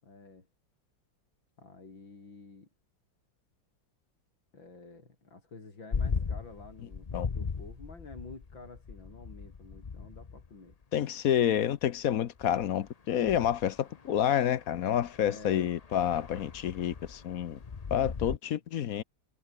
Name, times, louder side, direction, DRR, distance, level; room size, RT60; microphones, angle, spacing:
voice 1, 0.0-0.5 1.6-2.7 4.5-10.8 15.2-15.7, left 3 dB, 85° left, 5.7 m, -50 dB
sound 1, 5.9-10.8 11.8-11.9 12.4-18.4, left 5 dB, 40° left, 0.5 m, -38 dB
voice 2, 10.9-17.6 17.9-19.0, left 10 dB, 60° left, 1.1 m, -29 dB
omnidirectional pair, 2.0 m